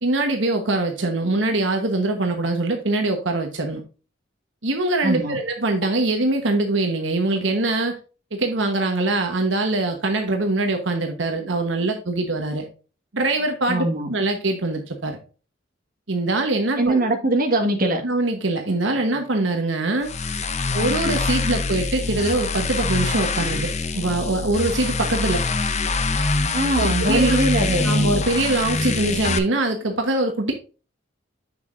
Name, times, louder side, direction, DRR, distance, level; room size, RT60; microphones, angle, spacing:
voice 1, 0.0-3.8 4.6-8.0 8.3-12.7 13.1-15.2 16.1-17.1 18.0-20.1 20.7-25.4 26.7-27.4 27.8-30.5, right 2 dB, 75° right, 1.2 m, -23 dB
voice 2, 5.0-5.4 13.7-14.1 16.8-18.0 26.5-27.9, right 2 dB, 50° right, 1.8 m, -21 dB
sound 1, 20.0-29.4, left 3 dB, 35° left, 0.8 m, -24 dB
8.0 x 6.9 x 2.6 m
head